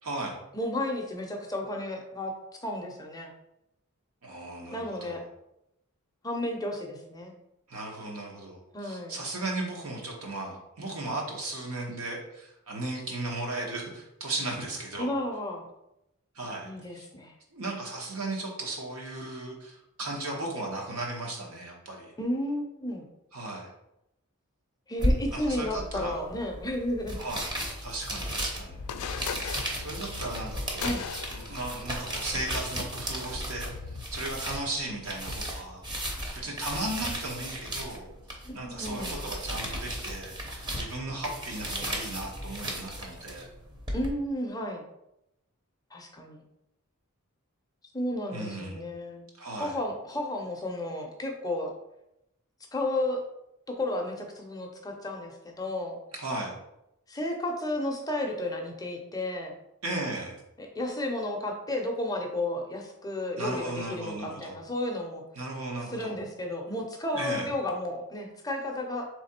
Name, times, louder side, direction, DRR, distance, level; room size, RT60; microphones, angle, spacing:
voice 1, 0.0-0.4 4.2-5.2 7.7-15.1 16.3-17.1 17.5-22.1 23.3-23.7 25.3-26.1 27.2-27.5 27.8-28.8 29.8-31.0 31.3-35.8 36.3-43.5 48.3-48.8 49.4-49.8 56.1-56.5 59.8-60.4 63.4-64.6 65.4-66.2 67.1-67.5, right 2 dB, 70° right, -1 dB, 1.1 m, -36 dB
voice 2, 0.5-3.3 4.7-5.2 6.2-7.3 8.7-9.2 15.0-15.7 16.6-17.3 22.2-23.1 24.9-27.2 30.8-31.0 38.4-39.2 43.9-44.8 45.9-46.4 47.9-49.3 49.6-51.7 52.7-53.2 53.7-56.0 57.1-59.6 60.6-65.2 65.9-69.1, left 1 dB, 15° left, 2 dB, 0.6 m, -33 dB
sound 1, 25.0-44.1, equal, 20° right, 0.8 m, -35 dB
sound 2, 28.7-34.0, left 6 dB, 70° left, 0.3 m, -40 dB
3.7 x 3.3 x 4.3 m, 0.84 s
head